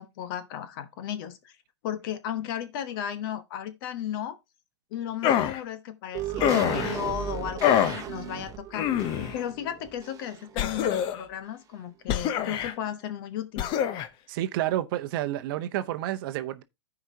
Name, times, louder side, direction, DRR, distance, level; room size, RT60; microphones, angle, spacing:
voice 1, 0.0-1.5 1.8-4.4 4.9-8.9 9.3-13.7, left 10 dB, 50° left, 1.2 m, -35 dB
sound 1, 5.2-5.6 6.4-7.0 7.6-8.0 8.7-9.4 10.6-11.3 12.1-12.7 13.6-14.1, left 10 dB, 35° left, 0.7 m, -25 dB
sound 2, 6.1-10.6 10.9-11.0, right 9 dB, 25° right, 1.0 m, -36 dB
voice 2, 14.3-16.6, right 13 dB, 50° right, 0.7 m, -29 dB
14.5 x 4.9 x 2.7 m
hypercardioid pair, 125°, 14 cm